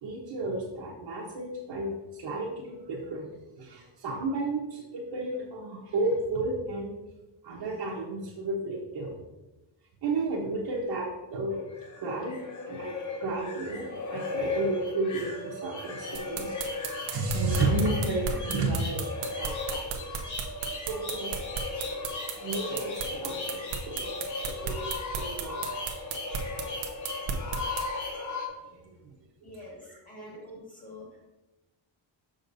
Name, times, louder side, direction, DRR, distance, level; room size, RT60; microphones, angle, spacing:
voice 1, 0.0-3.3 3.6-6.9 7.4-9.1 10.0-11.6 12.0-12.4 12.7-12.9 13.2-16.6 17.0-19.0 19.4-19.8 20.9-21.4 21.8-22.0 22.4-24.1 24.5-25.6 28.8-29.1 29.4-29.5 30.1-30.4, right 2 dB, 55° right, -6 dB, 1.2 m, -32 dB
sound 1, 11.5-28.5, left 3 dB, 35° left, 0.8 m, -36 dB
sound 2, 16.1-27.8, right 7 dB, 75° right, 0.9 m, -34 dB
voice 2, 29.4-31.3, left 2 dB, 15° left, -4 dB, 1.8 m, -47 dB
6.5 x 6.4 x 2.6 m, 1.1 s
cardioid pair, 175°, 50 cm